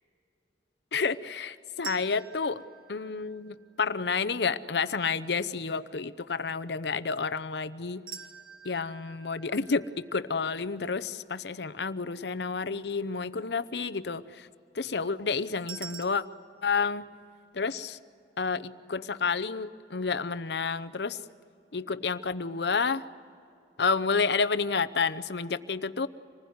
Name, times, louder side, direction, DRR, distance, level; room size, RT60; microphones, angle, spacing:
voice 1, 0.9-2.6 2.9-8.0 8.6-14.5 14.7-16.2 16.6-17.1 17.5-18.0 18.4-21.2 21.7-23.0 23.8-26.1, left 5 dB, 65° left, 13 dB, 0.8 m, -30 dB
sound 1, 1.8-3.9 8.1-11.2 15.7-16.0, right 8 dB, 55° right, 1.7 m, -46 dB
26.5 x 20.0 x 9.5 m, 2.5 s
head